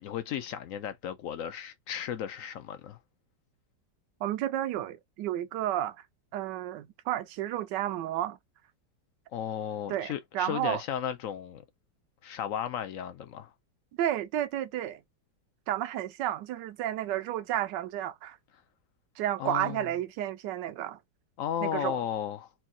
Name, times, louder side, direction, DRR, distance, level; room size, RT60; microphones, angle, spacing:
voice 1, 0.0-3.0 9.3-11.6 12.2-13.5 19.4-19.9 21.4-22.5, left 9 dB, 65° left, 0.8 m, -34 dB
voice 2, 4.2-6.0 6.3-8.4 9.9-10.8 14.0-15.0 15.7-18.4 19.2-21.0 21.6-22.0, right 12 dB, 80° right, 1.3 m, -31 dB
4.4 x 2.4 x 3.9 m
omnidirectional pair, 1.9 m